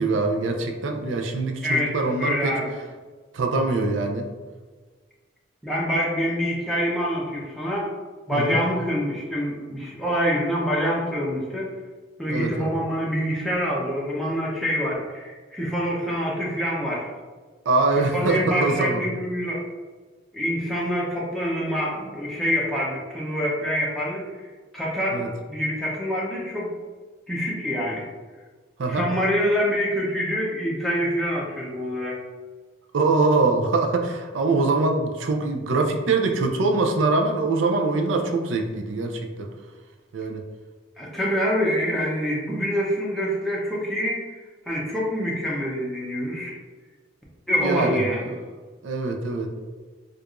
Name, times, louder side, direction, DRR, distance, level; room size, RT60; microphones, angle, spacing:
voice 1, 0.0-2.5 3.3-4.3 8.3-8.6 12.3-12.7 17.7-19.0 25.1-25.3 28.8-29.1 32.9-39.3 40.1-40.4 47.6-48.0 48.8-49.5, right 3 dB, 85° right, 3 dB, 0.5 m, -23 dB
voice 2, 1.6-2.7 5.6-7.9 8.3-11.7 12.2-17.1 18.0-19.6 20.3-26.7 27.3-28.1 28.9-32.2 41.0-44.2 44.7-46.6 47.5-48.4, equal, ahead, -5 dB, 0.7 m, -26 dB
4.6 x 2.4 x 2.5 m, 1.4 s
head